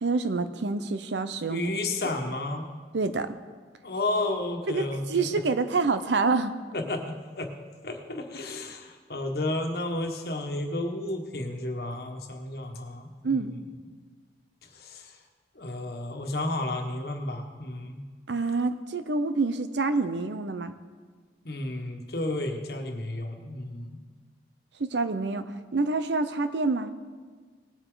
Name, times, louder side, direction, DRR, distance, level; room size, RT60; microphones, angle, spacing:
voice 1, 0.0-1.6 2.9-3.3 4.7-6.5 13.2-13.5 18.3-20.7 24.8-25.4 25.7-26.9, right 3 dB, 85° right, 11 dB, 0.7 m, -27 dB
voice 2, 1.5-2.7 3.8-5.4 6.7-7.0 7.4-7.5 7.8-13.5 14.6-15.2 15.5-18.0 21.4-24.0, left 2 dB, 60° left, 3 dB, 1.4 m, -32 dB
19.0 x 8.0 x 3.9 m, 1.5 s
head